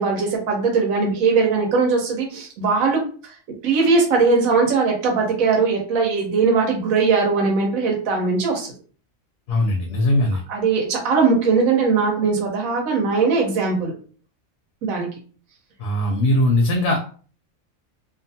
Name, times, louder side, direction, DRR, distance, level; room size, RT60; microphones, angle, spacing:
voice 1, 0.0-3.3 3.6-8.7 10.5-13.9 14.8-15.1, right 4 dB, 90° right, 0 dB, 1.2 m, -20 dB
voice 2, 9.5-10.4 15.8-17.0, left 1 dB, 65° left, 2 dB, 0.8 m, -19 dB
2.6 x 2.4 x 2.6 m, 0.40 s
omnidirectional pair, 1.4 m